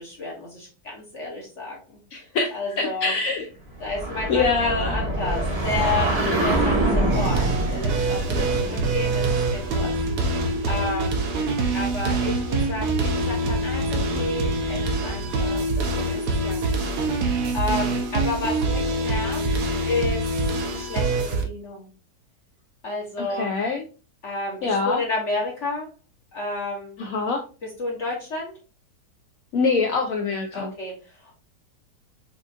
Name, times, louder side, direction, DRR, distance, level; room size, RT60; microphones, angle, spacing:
voice 1, 0.0-2.0 2.5-3.2 3.8-9.9 10.2-11.5 11.7-16.9 17.2-20.3 20.7-21.9 22.8-23.5 24.2-25.9 26.3-27.0 27.6-28.5 30.5-31.4, left 3 dB, 50° left, -3 dB, 1.0 m, -31 dB
voice 2, 2.1-3.5 4.3-5.0 23.2-23.8 24.6-25.0 27.0-27.4 29.5-30.7, left 4 dB, 75° left, 3 dB, 0.8 m, -24 dB
sound 1, 3.8-10.4, right 1 dB, 30° right, 0.7 m, -26 dB
sound 2, 7.1-21.4, right 2 dB, 70° right, 1.2 m, -25 dB
5.0 x 2.4 x 2.4 m, 0.34 s
omnidirectional pair, 1.9 m